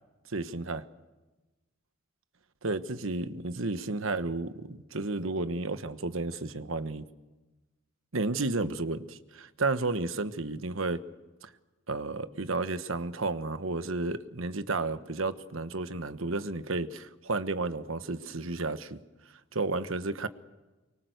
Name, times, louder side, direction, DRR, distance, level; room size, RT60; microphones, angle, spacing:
voice 1, 0.3-0.8 2.6-7.0 8.1-11.0 11.4-11.5 11.9-19.0 19.5-20.3, right 3 dB, 85° right, 12 dB, 1.3 m, -32 dB
24.5 x 23.5 x 8.1 m, 1.1 s
head